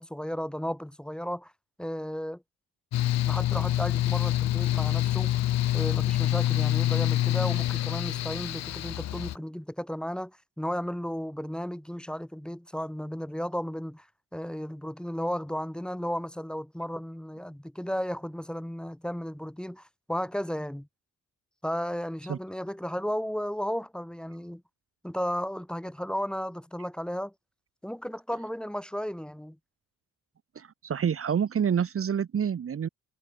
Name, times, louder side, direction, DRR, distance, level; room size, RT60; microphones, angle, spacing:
voice 1, 0.0-1.5 1.8-2.4 3.2-5.5 5.7-14.1 14.3-20.9 21.6-24.6 25.0-27.3 27.8-29.6, equal, 5° left, 3.7 m, -34 dB
Mechanical fan, 2.9-9.4, left 13 dB, 60° left, 0.7 m, -26 dB
voice 2, 30.6-32.9, right 7 dB, 45° right, 2.3 m, -27 dB
cardioid pair, 90°, 30 cm